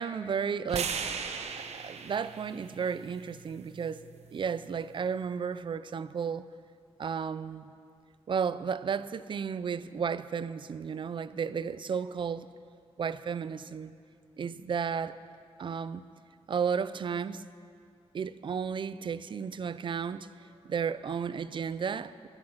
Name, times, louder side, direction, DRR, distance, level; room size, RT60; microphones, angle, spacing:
voice 1, 0.0-4.1 4.3-6.5 7.0-7.7 8.3-12.5 13.0-13.9 14.4-15.2 15.6-16.0 16.5-17.4 18.1-22.3, right 6 dB, 50° right, 15 dB, 0.4 m, -33 dB
sound 1, 0.7-4.9, right 6 dB, 80° right, 0.9 m, -39 dB
14.5 x 12.5 x 5.7 m, 2.3 s
wide cardioid pair, 160°, 11 cm